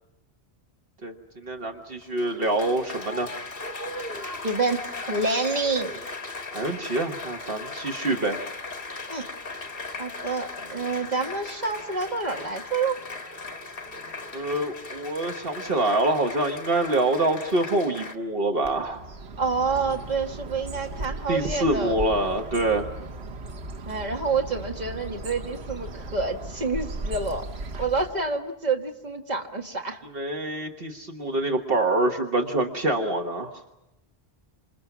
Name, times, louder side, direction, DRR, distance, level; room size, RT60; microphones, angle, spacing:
voice 1, 1.0-3.3 6.5-8.4 14.3-19.0 21.3-22.9 30.1-33.5, right 2 dB, 65° right, 4 dB, 1.6 m, -26 dB
Applause, 1.9-18.2, left 3 dB, 60° left, 2.1 m, -37 dB
voice 2, 4.4-5.9 9.1-9.3 10.0-13.0 19.4-22.0 23.9-27.4 27.8-30.0, right 4 dB, 40° right, 2 dB, 1.8 m, -28 dB
Bird, 18.6-28.3, right 2 dB, 80° right, 1.4 m, -37 dB
28.0 x 27.5 x 6.0 m, 0.93 s
omnidirectional pair, 1.1 m